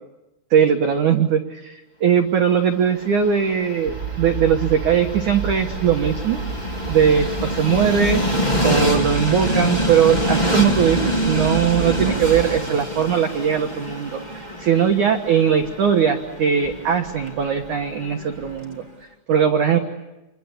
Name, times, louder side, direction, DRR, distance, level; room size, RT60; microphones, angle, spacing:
voice 1, 0.5-6.4 6.9-8.2 8.6-18.8 19.3-19.8, right 8 dB, 85° right, 4 dB, 1.7 m, -20 dB
Train, 2.7-18.8, equal, 30° left, 0.7 m, -26 dB
sound 1, 3.9-12.4, right 5 dB, 30° right, 3.3 m, -31 dB
28.5 x 23.0 x 8.4 m, 0.99 s
omnidirectional pair, 5.8 m